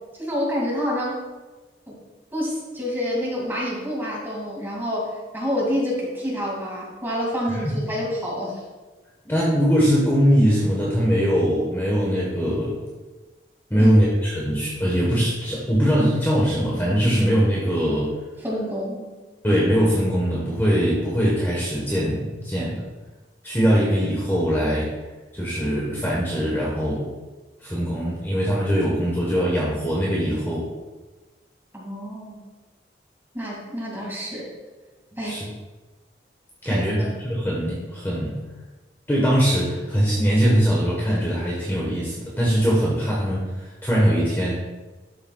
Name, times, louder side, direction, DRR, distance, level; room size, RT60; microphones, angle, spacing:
voice 1, 0.2-1.2 1.9-2.0 2.3-8.6 13.8-13.9 18.4-19.1 31.7-32.4 33.3-34.5 35.2-35.4 36.6-37.1, equal, 10° right, -4 dB, 2.2 m, -28 dB
voice 2, 9.2-12.8 13.7-18.1 19.4-22.8 23.4-24.9 25.3-27.1 27.6-30.7 35.2-35.5 36.6-37.0 37.3-38.4 39.1-44.6, equal, 15° left, -5 dB, 1.2 m, -21 dB
12.0 x 6.6 x 2.3 m, 1.2 s
head